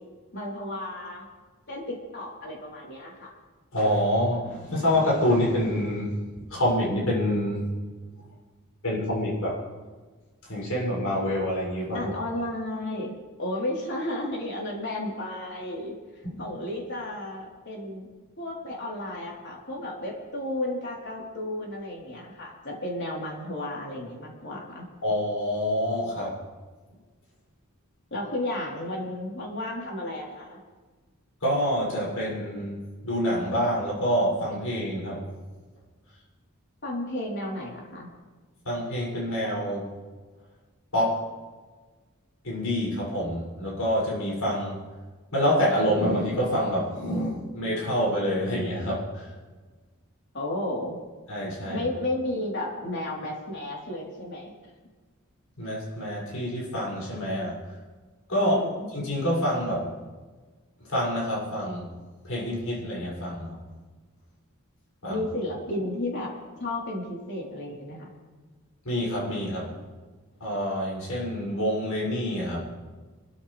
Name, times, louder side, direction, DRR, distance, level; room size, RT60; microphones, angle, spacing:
voice 1, 0.3-1.3 1.7-3.3 11.9-13.1 13.4-15.9 16.4-18.1 18.4-24.9 28.1-30.6 36.8-38.1 50.3-51.0 51.7-54.5 58.4-58.9 65.1-66.3 66.6-68.1, left 1 dB, 50° left, -2 dB, 3.9 m, -33 dB
voice 2, 3.7-7.7 8.8-9.6 10.4-12.1 16.2-16.5 25.0-26.4 31.4-35.3 38.6-39.9 40.9-41.2 42.4-44.8 45.3-49.3 51.3-51.9 55.6-57.7 58.3-58.6 58.9-59.9 60.9-63.6 65.0-65.2 68.8-69.8 70.4-72.6, equal, 70° left, -5 dB, 6.8 m, -27 dB
27.5 x 13.5 x 3.5 m, 1.4 s
head